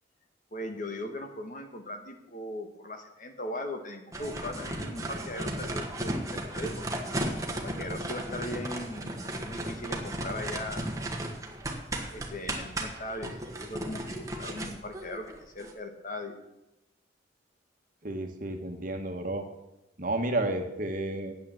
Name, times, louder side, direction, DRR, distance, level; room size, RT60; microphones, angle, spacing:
voice 1, 0.5-6.9 7.6-10.9 12.1-13.3 13.6-16.4, left 1 dB, 45° left, 5 dB, 1.4 m, -39 dB
sound 1, 4.1-15.7, right 1 dB, 15° right, 1.4 m, -35 dB
voice 2, 18.0-19.4 20.0-21.3, right 2 dB, 45° right, 5 dB, 1.4 m, -31 dB
9.5 x 8.5 x 7.6 m, 0.93 s
head